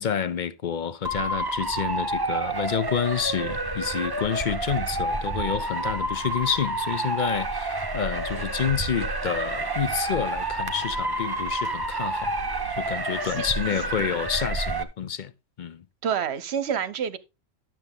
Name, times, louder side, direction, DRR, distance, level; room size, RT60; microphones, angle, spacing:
voice 1, 0.0-12.4 12.7-15.3 15.6-15.8, left 8 dB, 50° left, 0.6 m, -29 dB
Motor vehicle (road) / Siren, 1.0-14.8, right 2 dB, 20° right, 0.9 m, -29 dB
sound 1, 1.3-13.6, right 1 dB, 30° left, 1.9 m, -49 dB
voice 2, 16.0-17.2, right 8 dB, 55° right, 1.1 m, -28 dB
12.0 x 7.3 x 3.5 m
omnidirectional pair, 1.4 m